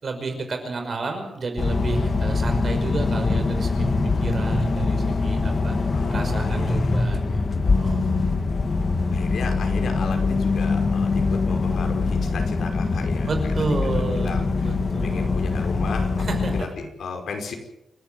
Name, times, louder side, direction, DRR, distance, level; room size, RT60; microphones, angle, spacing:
voice 1, 0.0-5.7 6.1-7.4 7.8-8.0 13.3-15.4 16.2-16.5, right 3 dB, 40° right, 5 dB, 5.5 m, -31 dB
sound 1, 1.6-16.6, left 3 dB, 40° left, 1.9 m, -23 dB
voice 2, 5.9-6.9 9.1-14.8 15.0-17.5, left 4 dB, 85° left, 4 dB, 5.3 m, -35 dB
29.0 x 12.5 x 9.2 m, 0.89 s
wide cardioid pair, 175°, 0 cm